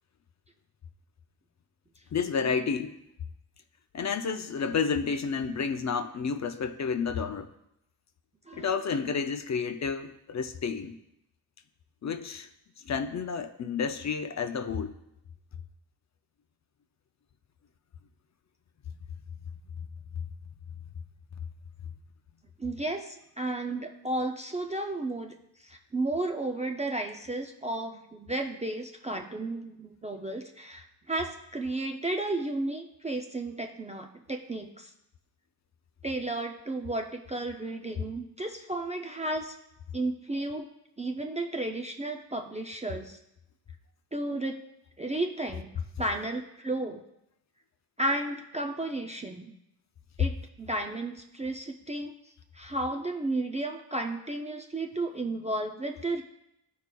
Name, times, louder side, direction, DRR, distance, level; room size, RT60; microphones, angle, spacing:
voice 1, 2.1-2.9 3.9-7.5 8.5-11.0 12.0-12.5 12.8-14.9, left 6 dB, 45° left, 8 dB, 0.4 m, -30 dB
voice 2, 8.5-9.0 22.6-25.3 25.6-34.9 36.0-39.6 39.9-40.7 41.0-43.2 44.1-44.6 45.0-45.7 46.0-47.0 48.0-49.5 50.2-52.1 52.5-56.2, right 2 dB, 20° right, 3 dB, 0.3 m, -33 dB
14.0 x 4.7 x 2.2 m, 0.83 s
wide cardioid pair, 155°, 40 cm